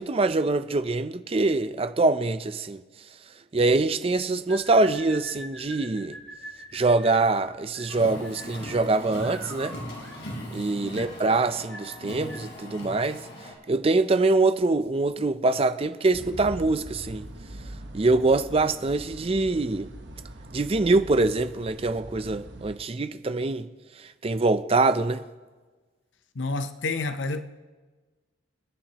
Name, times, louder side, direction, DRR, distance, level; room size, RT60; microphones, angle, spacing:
voice 1, 0.0-2.8 3.5-6.2 6.7-9.7 10.5-13.2 13.7-17.3 17.9-19.9 20.5-23.7 24.2-25.2, right 3 dB, 30° right, 0.5 m, -24 dB
sound 1, 4.5-12.5, equal, 10° left, 5.7 m, -44 dB
Car, 7.9-13.5, left 1 dB, 65° left, 4.1 m, -39 dB
sound 2, 16.1-22.8, right 1 dB, 65° right, 1.2 m, -42 dB
voice 2, 26.4-27.4, left 3 dB, 80° left, 0.7 m, -30 dB
28.5 x 10.5 x 2.9 m
head